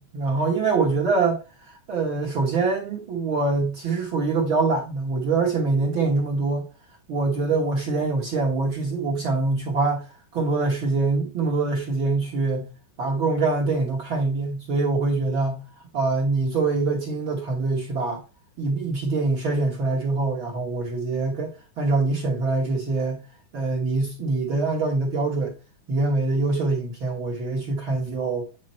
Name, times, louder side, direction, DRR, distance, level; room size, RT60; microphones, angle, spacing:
voice 1, 0.0-6.7 7.1-10.1 10.3-12.7 13.0-15.7 15.9-18.2 18.6-23.2 23.5-25.5 25.9-28.5, right 3 dB, 50° right, 1.6 m, -24 dB
9.3 x 4.0 x 4.2 m
omnidirectional pair, 3.7 m